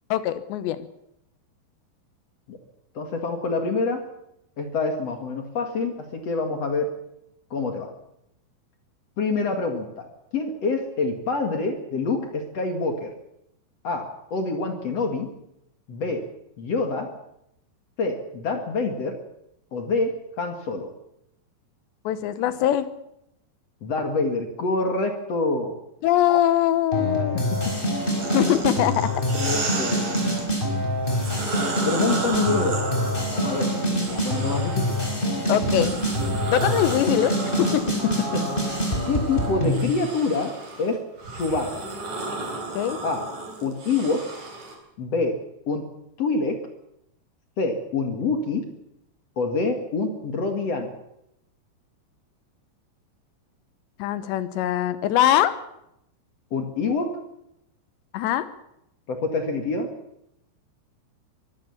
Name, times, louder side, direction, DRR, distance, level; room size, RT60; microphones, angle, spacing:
voice 1, 0.1-0.8 22.1-22.9 26.0-27.4 28.3-29.2 35.5-35.9 36.5-38.0 42.7-43.0 54.0-55.6 58.1-58.5, left 12 dB, 75° left, 13 dB, 3.1 m, -22 dB
voice 2, 2.9-4.0 4.6-6.9 7.5-7.9 9.2-10.1 10.3-13.1 13.8-14.0 14.3-15.3 15.9-16.2 16.6-17.1 18.0-19.1 19.7-20.9 23.8-25.8 27.1-27.4 29.3-30.1 31.8-32.8 33.3-33.7 34.1-34.9 38.3-38.4 39.1-40.5 40.8-41.0 41.3-41.9 43.0-43.2 43.6-44.2 45.0-45.4 45.7-45.9 46.2-46.6 47.6-48.6 49.4-50.9 56.5-57.2 59.1-59.9, left 3 dB, 45° left, 5 dB, 2.3 m, -26 dB
sound 1, 26.9-39.8, equal, 10° left, 4.2 m, -26 dB
sound 2, 28.2-30.4 31.0-35.1 35.6-44.7, right 3 dB, 40° right, 4.7 m, -33 dB
23.0 x 16.0 x 7.2 m, 0.79 s
omnidirectional pair, 5.3 m